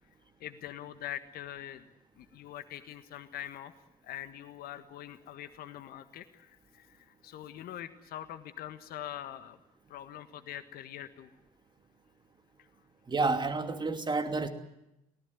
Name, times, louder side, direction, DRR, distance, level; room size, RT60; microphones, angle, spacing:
voice 1, 0.4-1.9 2.2-3.7 4.0-9.6 9.9-11.3, left 11 dB, 50° left, 11 dB, 1.6 m, -43 dB
voice 2, 13.1-14.5, right 3 dB, 25° right, 7 dB, 2.7 m, -29 dB
24.0 x 18.0 x 9.4 m, 0.88 s
figure-of-eight pair, 60°, 19 cm